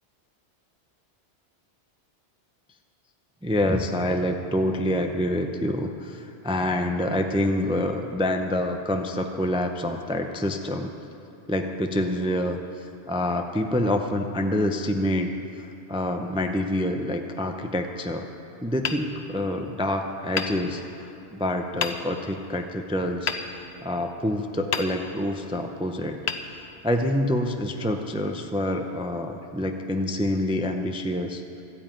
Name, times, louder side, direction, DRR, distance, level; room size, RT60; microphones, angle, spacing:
voice 1, 3.4-10.9 11.5-15.3 15.6-18.3 18.6-26.2 26.5-31.6, left 1 dB, 5° right, 5 dB, 0.5 m, -27 dB
Hammer, 18.8-19.8 20.3-21.3 21.8-22.4 23.3-24.2 24.7-25.4 26.2-27.2, left 6 dB, 75° left, 1.0 m, -33 dB
13.0 x 9.0 x 9.0 m, 2.9 s
omnidirectional pair, 1.1 m